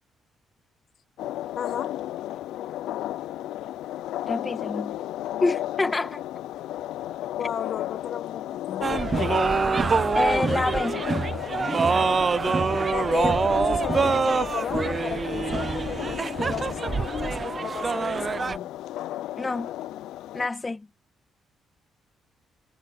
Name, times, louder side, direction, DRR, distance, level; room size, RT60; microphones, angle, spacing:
sound 1, 1.2-20.5, left 13 dB, 85° left, 0.5 m, -34 dB
voice 1, 1.6-1.9 7.4-9.3 12.9-18.7, left 8 dB, 65° left, 1.4 m, -34 dB
voice 2, 4.3-5.0 5.4-6.2 10.1-11.0 19.4-19.7 20.3-20.9, left 3 dB, 25° left, 2.1 m, -27 dB
sound 2, 8.8-18.6, right 4 dB, 35° right, 0.6 m, -25 dB
cardioid pair, 90°, 0 cm